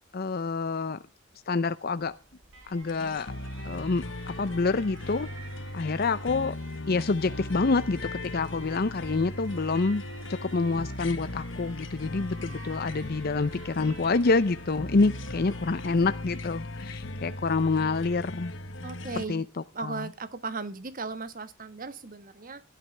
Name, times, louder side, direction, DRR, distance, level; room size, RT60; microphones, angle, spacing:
voice 1, 0.1-1.0 1.5-2.1 2.7-3.3 3.6-4.0 4.4-5.3 5.7-6.6 6.9-10.0 10.3-18.5 19.3-19.4 19.8-20.0, left 3 dB, 50° left, 13 dB, 0.6 m, -27 dB
Alarm, 2.0-19.2, right 4 dB, 85° right, 3.3 m, -52 dB
sound 1, 2.9-19.2, left 1 dB, 65° left, 1.3 m, -38 dB
voice 2, 18.8-19.4 19.7-22.6, right 4 dB, 45° right, 12 dB, 1.5 m, -37 dB
16.5 x 12.5 x 3.4 m, 0.30 s
head